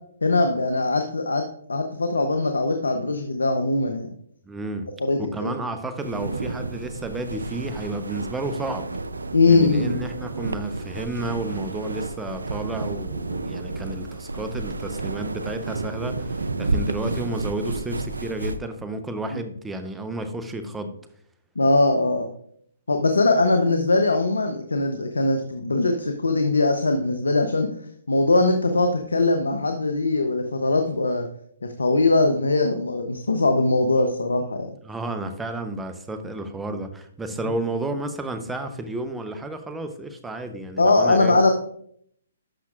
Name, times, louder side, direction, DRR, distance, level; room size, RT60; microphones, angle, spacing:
voice 1, 0.2-1.4 1.7-4.1 5.0-5.6 9.3-10.0 19.3-19.4 21.6-22.3 22.9-27.7 28.1-31.3 31.6-34.7 40.8-41.5, left 2 dB, 85° left, 6 dB, 0.8 m, -21 dB
voice 2, 4.4-4.9 5.2-8.9 9.5-21.0 34.8-41.4, right 2 dB, 10° right, 8 dB, 0.8 m, -31 dB
sound 1, 6.0-18.6, right 3 dB, 85° right, 0.5 m, -31 dB
11.5 x 5.9 x 2.5 m, 0.66 s
hypercardioid pair, 135°, 0 cm